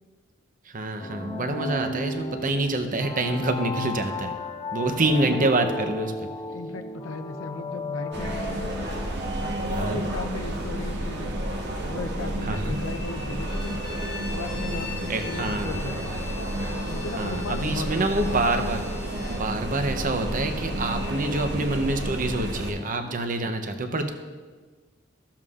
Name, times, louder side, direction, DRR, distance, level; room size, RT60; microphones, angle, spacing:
voice 1, 0.7-4.3 4.7-6.3 9.7-10.0 12.4-12.8 15.1-16.0 17.2-24.1, right 2 dB, 45° right, 6 dB, 0.7 m, -27 dB
sound 1, 1.0-9.6, left 2 dB, 20° left, 0.3 m, -35 dB
voice 2, 5.2-5.5 6.5-8.8 9.3-11.5 11.8-13.8 14.1-16.1 16.8-18.4, left 3 dB, 75° left, 7 dB, 0.6 m, -36 dB
sound 2, 8.1-22.7, right 1 dB, 60° right, 1.0 m, -31 dB
Bowed string instrument, 13.4-19.5, left 6 dB, 50° left, 0.9 m, -42 dB
14.0 x 7.3 x 2.5 m, 1.4 s
head